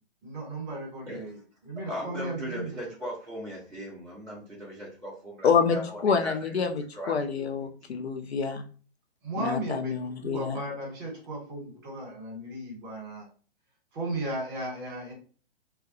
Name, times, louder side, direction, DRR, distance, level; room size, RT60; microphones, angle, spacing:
voice 1, 0.2-1.4 1.6-2.8 9.2-9.9 10.2-13.3 13.9-15.1, right 1 dB, 25° right, -1 dB, 1.2 m, -35 dB
voice 2, 1.9-6.6 6.9-7.5 7.8-7.9, equal, 5° right, -12 dB, 0.3 m, -38 dB
voice 3, 5.4-5.8 6.0-8.7 9.4-10.6, left 6 dB, 65° left, 7 dB, 0.6 m, -27 dB
2.2 x 2.2 x 2.8 m, 0.40 s
figure-of-eight pair, 120°, 34 cm